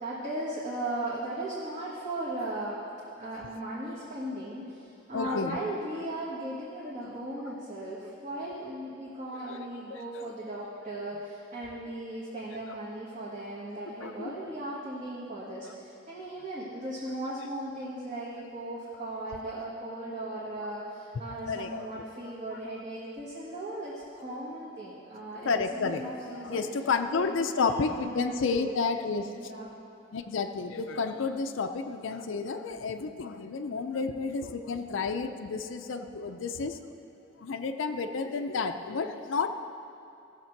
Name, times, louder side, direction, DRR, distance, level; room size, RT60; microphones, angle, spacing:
voice 1, 0.0-2.8 3.2-26.7 27.1-27.2 27.6-28.7 29.4-29.7, right 1 dB, 40° right, -7 dB, 1.4 m, -37 dB
voice 2, 5.1-5.6 9.5-10.2 14.0-14.3 19.3-19.4 21.5-21.9 22.2-22.6 25.3-29.4 30.1-36.8 37.4-39.5, left 4 dB, 75° left, 7 dB, 0.5 m, -31 dB
16.5 x 6.7 x 4.5 m, 2.6 s
head